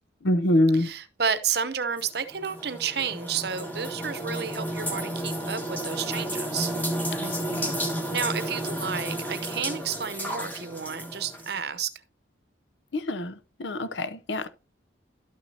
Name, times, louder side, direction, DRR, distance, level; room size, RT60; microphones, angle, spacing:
voice 1, 0.2-0.9 7.2-7.8 12.9-14.5, left 1 dB, 70° left, 0.7 m, -26 dB
voice 2, 0.8-6.7 8.1-11.9, right 7 dB, 55° right, 0.8 m, -31 dB
sound 1, 2.0-11.6, right 1 dB, 10° left, 1.6 m, -32 dB
12.0 x 6.1 x 2.8 m
head